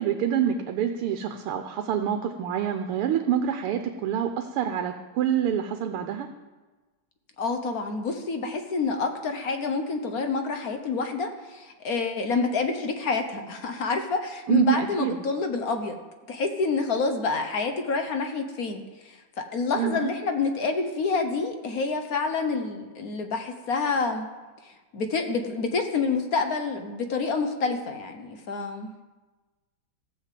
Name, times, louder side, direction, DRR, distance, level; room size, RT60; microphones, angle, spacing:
voice 1, 0.0-6.3 14.5-15.2 19.8-20.1, right 9 dB, 90° right, 6 dB, 1.7 m, -26 dB
voice 2, 7.4-16.0 16.3-24.3 24.6-28.9, left 4 dB, 50° left, 6 dB, 1.4 m, -28 dB
14.5 x 7.1 x 7.6 m, 1.2 s
omnidirectional pair, 2.4 m